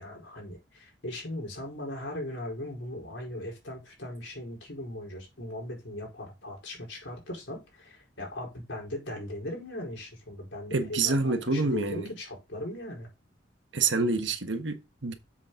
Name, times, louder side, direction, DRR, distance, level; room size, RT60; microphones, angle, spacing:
voice 1, 0.0-13.1, left 1 dB, 80° left, 4.8 m, -39 dB
voice 2, 10.7-12.1 13.7-15.1, right 3 dB, 80° right, 1.4 m, -27 dB
7.5 x 6.9 x 3.9 m
head